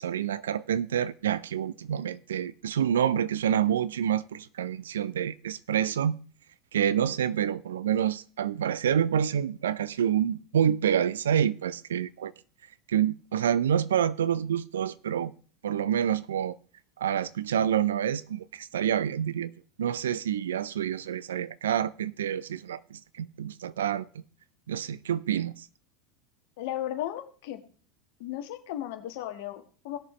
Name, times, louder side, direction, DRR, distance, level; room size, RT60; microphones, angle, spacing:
voice 1, 0.0-6.2 6.7-12.3 12.9-15.3 15.6-16.6 17.0-19.5 19.8-24.1 24.7-25.7, right 9 dB, 75° right, 0.5 m, -27 dB
voice 2, 26.6-27.6 28.2-30.0, left 12 dB, 65° left, 1.4 m, -35 dB
19.0 x 6.7 x 3.1 m
figure-of-eight pair, 80°, 0 cm